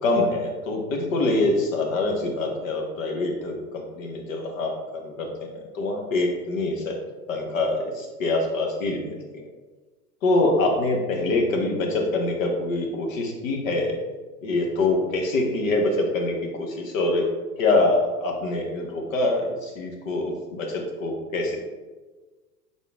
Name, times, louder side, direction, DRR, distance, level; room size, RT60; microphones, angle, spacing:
voice 1, 0.0-7.0 7.3-9.5 10.2-14.0 14.4-17.2 17.6-21.6, left 2 dB, 55° left, 2 dB, 1.1 m, -25 dB
3.8 x 3.7 x 3.5 m, 1.3 s
figure-of-eight pair, 85°, 46 cm